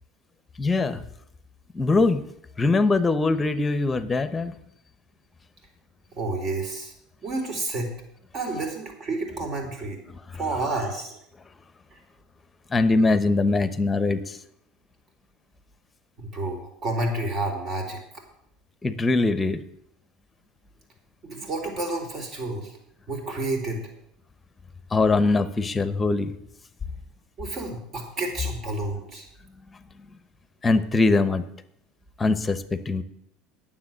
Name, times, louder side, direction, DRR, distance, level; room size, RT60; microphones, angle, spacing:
voice 1, 0.6-1.0 1.7-2.2 2.6-4.6 10.1-10.4 12.7-14.4 18.8-19.6 24.9-26.4 29.7-29.8 30.6-31.4 32.2-33.0, left 3 dB, 20° left, 13 dB, 0.9 m, -22 dB
voice 2, 6.2-6.9 7.2-7.9 8.3-10.0 10.3-11.2 11.9-12.0 16.2-18.0 21.2-22.7 23.1-23.8 27.4-29.3, right 2 dB, 45° right, 3 dB, 3.7 m, -30 dB
9.6 x 7.4 x 7.6 m, 0.75 s
supercardioid pair, 95°, 0 cm